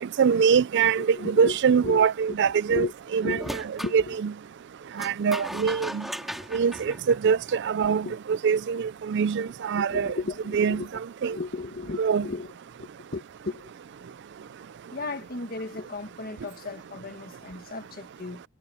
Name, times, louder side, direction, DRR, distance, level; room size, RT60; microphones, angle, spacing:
voice 1, 0.2-2.9 3.1-3.4 3.9-4.3 5.0-6.0 6.5-10.1 10.5-10.8 11.2-11.4 12.0-12.3, right 6 dB, 55° right, 0.4 m, -23 dB
voice 2, 1.0-1.6 1.8-2.4 2.7-2.9 3.2-3.5 3.8-4.1 8.0-8.2 9.8-10.9 11.2-12.5 12.8-13.7 14.9-18.4, left 3 dB, 45° left, 1.6 m, -35 dB
sound 1, 3.4-4.0 5.0-7.7, equal, ahead, 4.3 m, -37 dB
head